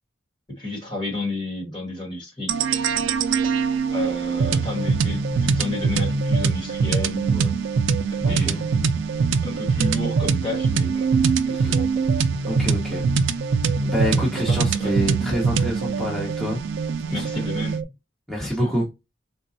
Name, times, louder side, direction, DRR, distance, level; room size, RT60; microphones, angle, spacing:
voice 1, 0.5-2.5 3.9-7.5 8.2-11.1 11.5-12.0 14.1-14.9 17.1-17.8 18.4-18.7, left 2 dB, 25° left, 1.3 m, -31 dB
sound 1, 2.5-17.8, right 5 dB, 75° right, 0.4 m, -23 dB
voice 2, 8.2-8.6 11.6-11.7 12.4-13.0 13.8-16.6 17.1-17.4 18.3-18.9, equal, ahead, 0.9 m, -27 dB
3.9 x 2.2 x 2.5 m
head